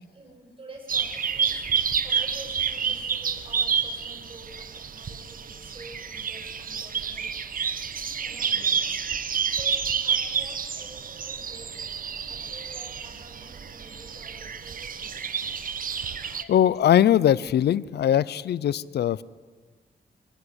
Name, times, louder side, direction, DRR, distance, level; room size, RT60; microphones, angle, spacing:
voice 1, 0.0-1.6 2.0-7.3 8.2-9.0 9.5-12.0 12.3-15.3, right 2 dB, 30° right, 0 dB, 7.8 m, -48 dB
sound 1, 0.9-16.4, right 7 dB, 55° right, 1.3 m, -29 dB
voice 2, 16.3-19.2, left 10 dB, 85° left, 21 dB, 0.6 m, -21 dB
23.5 x 18.5 x 8.1 m, 1.5 s
wide cardioid pair, 110°, 17 cm